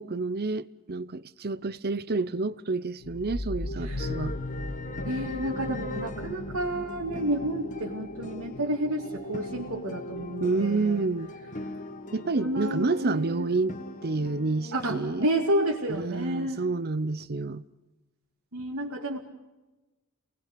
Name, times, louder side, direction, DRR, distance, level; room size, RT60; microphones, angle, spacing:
voice 1, 0.0-4.4 10.4-11.3 12.1-13.8 14.0-15.3 15.9-17.6, right 3 dB, 45° right, 0.7 m, -29 dB
sound 1, 3.0-12.4, left 1 dB, 70° left, 1.6 m, -38 dB
voice 2, 3.8-4.2 5.0-11.1 12.4-13.5 14.7-16.6 18.5-19.2, right 1 dB, 75° right, 2.5 m, -30 dB
sound 2, 4.0-15.5, left 2 dB, 35° left, 1.6 m, -41 dB
28.0 x 20.0 x 6.8 m
head